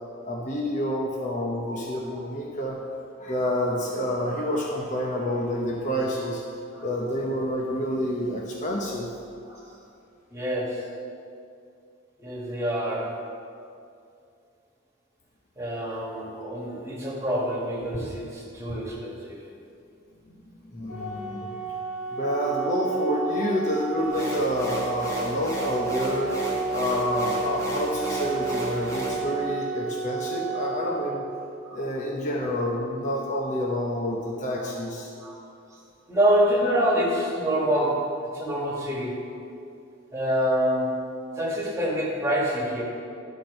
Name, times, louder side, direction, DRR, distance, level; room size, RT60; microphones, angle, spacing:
voice 1, 0.2-2.8 3.2-6.4 6.8-9.1 15.8-16.0 20.3-21.5 22.1-26.3 26.7-31.2 31.7-35.1, equal, 35° left, -2 dB, 0.8 m, -28 dB
voice 2, 10.3-10.9 12.2-13.2 15.6-19.4 26.9-27.0 28.5-28.6 31.7-31.8 35.2-35.3 36.1-39.1 40.1-41.1 41.4-42.8, equal, 15° right, -5 dB, 1.8 m, -26 dB
Organ, 20.9-31.9, right 4 dB, 80° left, 2.2 m, -32 dB
sound 1, 24.1-29.2, right 1 dB, 15° left, 1.4 m, -33 dB
11.5 x 4.4 x 6.4 m, 2.5 s
head